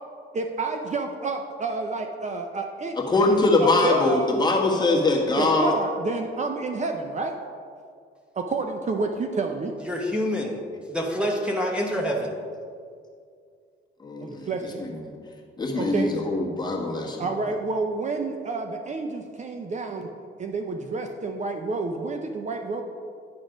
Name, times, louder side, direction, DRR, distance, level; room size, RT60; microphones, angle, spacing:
voice 1, 0.3-3.0 3.6-4.4 5.4-7.4 8.4-9.7 14.2-14.8 15.7-16.1 17.2-20.1 20.4-22.8, right 3 dB, 35° right, 4 dB, 0.6 m, -29 dB
voice 2, 3.0-5.7 14.0-14.5 14.8-15.1 15.6-17.2, left 2 dB, 20° left, -2 dB, 1.5 m, -22 dB
voice 3, 9.8-10.6 10.9-12.4, equal, 5° right, -2 dB, 0.9 m, -26 dB
10.5 x 4.1 x 5.1 m, 2.2 s
cardioid pair, 90°, 20 cm